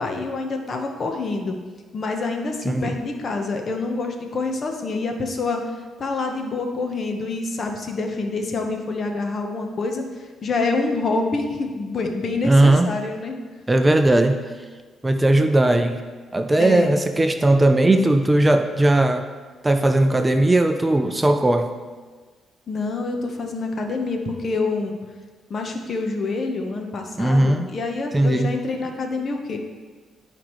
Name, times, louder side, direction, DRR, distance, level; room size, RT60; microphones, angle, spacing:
voice 1, 0.0-1.6 1.9-13.4 16.6-16.9 22.7-24.9 25.5-29.6, left 3 dB, 45° left, 3 dB, 1.0 m, -27 dB
voice 2, 2.7-3.0 12.4-12.9 13.7-14.4 15.0-16.0 16.3-19.3 19.6-21.7 27.2-27.7 28.1-28.5, right 1 dB, 15° right, 7 dB, 0.5 m, -18 dB
11.0 x 5.0 x 3.1 m, 1.4 s
cardioid pair, 90°, 0 cm